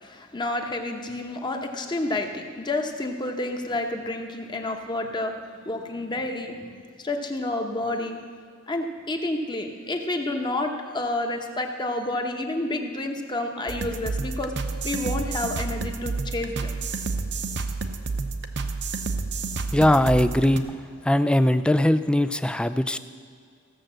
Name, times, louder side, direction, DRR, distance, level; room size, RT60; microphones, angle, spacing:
voice 1, 0.0-5.3 5.6-8.2 8.7-14.5 14.8-16.8, left 2 dB, 20° left, 4 dB, 1.0 m, -29 dB
sound 1, 13.7-20.6, right 3 dB, 55° right, 0.8 m, -30 dB
voice 2, 19.7-20.7 21.0-23.0, left 1 dB, 5° left, 12 dB, 0.3 m, -20 dB
15.5 x 6.6 x 7.5 m, 2.1 s
head